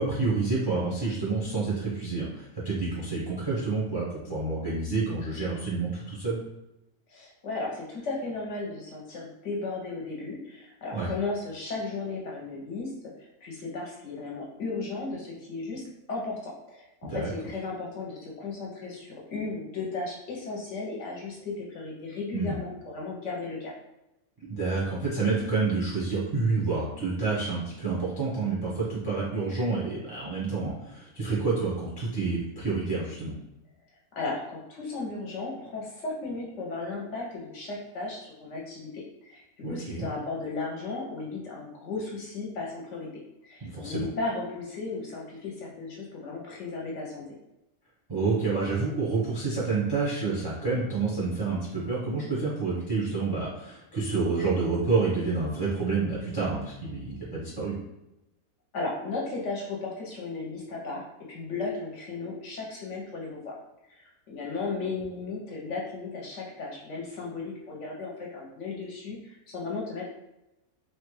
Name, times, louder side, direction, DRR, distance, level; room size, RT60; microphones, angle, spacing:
voice 1, 0.0-6.4 10.9-11.1 17.1-17.3 22.3-22.6 24.4-33.4 39.6-40.1 43.6-44.1 48.1-57.8, right 4 dB, 30° right, -5 dB, 0.4 m, -28 dB
voice 2, 7.1-12.9 13.2-15.8 16.1-23.7 34.2-43.1 43.4-47.2 58.7-61.0 61.3-63.5 64.0-70.0, left 3 dB, 60° left, -3 dB, 0.9 m, -35 dB
3.0 x 2.2 x 3.1 m, 0.93 s
omnidirectional pair, 1.5 m